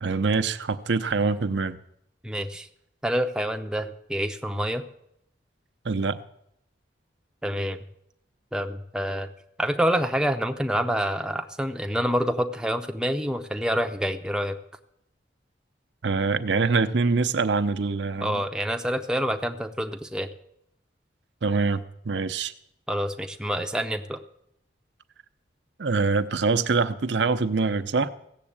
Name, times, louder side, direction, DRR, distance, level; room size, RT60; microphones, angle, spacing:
voice 1, 0.0-1.8 5.8-6.2 16.0-18.4 21.4-22.5 25.8-28.1, right 4 dB, 70° right, 11 dB, 0.7 m, -24 dB
voice 2, 2.2-2.7 3.0-4.8 7.4-7.8 8.5-9.3 9.6-14.6 18.2-20.3 22.9-24.2, equal, 5° right, 5 dB, 0.6 m, -27 dB
15.5 x 7.3 x 8.7 m, 0.76 s
head